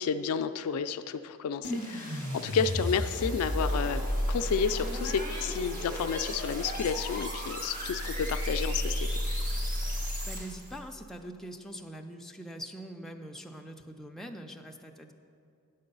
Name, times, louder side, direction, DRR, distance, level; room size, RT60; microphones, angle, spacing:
voice 1, 0.0-9.4, left 6 dB, 70° left, 11 dB, 0.3 m, -31 dB
sound 1, 1.6-10.7, equal, 40° right, 1.4 m, -33 dB
voice 2, 10.3-15.1, right 1 dB, ahead, 2 dB, 0.4 m, -43 dB
9.6 x 6.6 x 5.4 m, 2.5 s
head